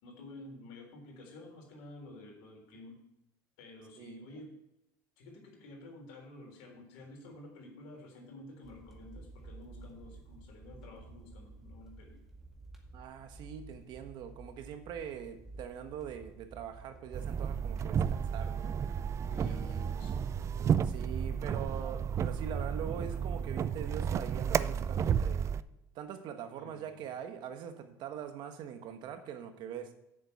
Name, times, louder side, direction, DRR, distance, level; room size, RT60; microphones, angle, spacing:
voice 1, 0.0-3.0 3.6-4.6 5.2-12.2 19.3-20.2 26.6-26.9, left 2 dB, 75° left, 1 dB, 3.7 m, -51 dB
voice 2, 4.0-4.3 12.9-18.8 19.4-19.9 20.8-25.5 25.9-29.9, right 8 dB, 55° right, 8 dB, 1.3 m, -43 dB
sound 1, 8.6-18.0, right 3 dB, 5° right, 2.0 m, -52 dB
sound 2, 17.1-25.6, right 7 dB, 35° right, 0.4 m, -32 dB
7.6 x 6.8 x 8.1 m, 0.84 s
supercardioid pair, 110°, 9 cm